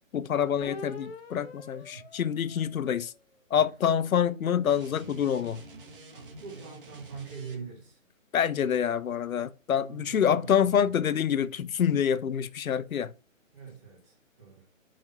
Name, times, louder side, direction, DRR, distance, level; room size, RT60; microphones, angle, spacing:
voice 1, 0.1-3.1 3.5-5.6 8.3-13.1, left 8 dB, 85° left, 0.7 m, -26 dB
sound 1, 0.6-3.3 3.9-6.4, left 4 dB, 50° left, 1.2 m, -47 dB
voice 2, 1.8-2.1 3.5-3.7 6.1-8.0 9.8-11.0 13.5-14.6, right 5 dB, 15° right, 1.3 m, -44 dB
sound 2, 4.7-7.9, right 2 dB, 40° right, 1.5 m, -48 dB
5.8 x 5.0 x 5.4 m
hypercardioid pair, 175°, 41 cm